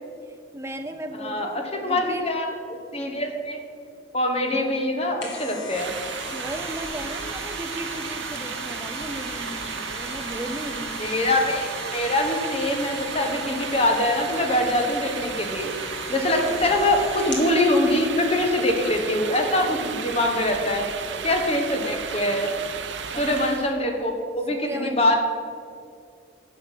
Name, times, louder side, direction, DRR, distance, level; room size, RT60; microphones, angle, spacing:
voice 1, 0.3-2.3 6.3-11.4 16.5-17.0 20.3-21.3 23.1-23.4 24.5-25.1, right 1 dB, 15° right, 5 dB, 0.7 m, -36 dB
voice 2, 1.2-2.4 2.9-3.6 4.1-5.9 11.0-15.7 16.1-20.8 21.2-22.5 23.1-25.2, left 1 dB, 30° left, 3 dB, 1.4 m, -23 dB
sound 1, 4.9-17.5 18.0-18.1, left 2 dB, 70° left, 2.2 m, -39 dB
sound 2, 5.7-23.8, right 6 dB, 70° right, 0.8 m, -34 dB
11.0 x 6.5 x 7.6 m, 2.3 s
head